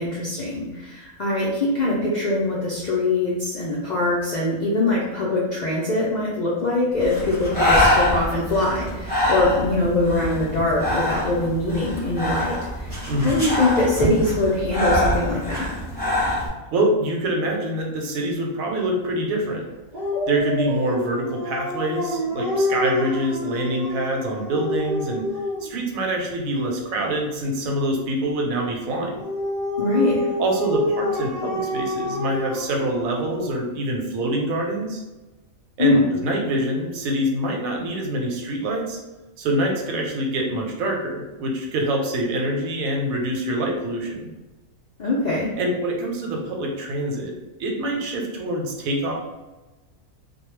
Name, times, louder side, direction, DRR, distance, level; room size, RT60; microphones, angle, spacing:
voice 1, 0.0-15.7 29.8-30.2 35.8-36.1 45.0-45.5, left 2 dB, 70° left, -6 dB, 0.4 m, -23 dB
Breathing, 7.0-16.5, left 1 dB, 10° left, 0.8 m, -24 dB
voice 2, 13.1-13.4 16.7-19.7 20.3-25.2 25.6-29.1 30.4-35.0 35.8-39.0 39.4-44.3 45.6-47.3 47.6-49.1, right 1 dB, 90° right, 0 dB, 1.0 m, -25 dB
Dog, 19.9-25.8 28.9-33.5, left 1 dB, 45° right, 0.7 m, -27 dB
2.3 x 2.1 x 3.1 m, 1.1 s
omnidirectional pair, 1.4 m